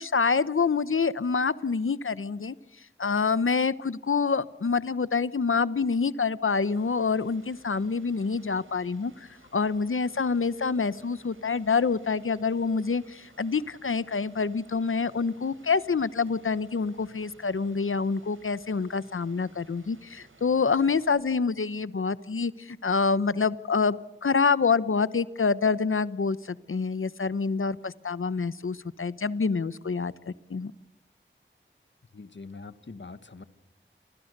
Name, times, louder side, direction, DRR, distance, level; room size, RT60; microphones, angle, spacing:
voice 1, 0.0-2.5 3.0-9.1 9.5-30.7, left 5 dB, 80° left, 17 dB, 1.0 m, -27 dB
Rain, 6.6-21.1, right 2 dB, 75° right, 5.4 m, -57 dB
voice 2, 32.1-33.4, left 3 dB, 65° left, 13 dB, 1.6 m, -43 dB
29.0 x 24.0 x 6.7 m, 0.98 s
wide cardioid pair, 60°, 21 cm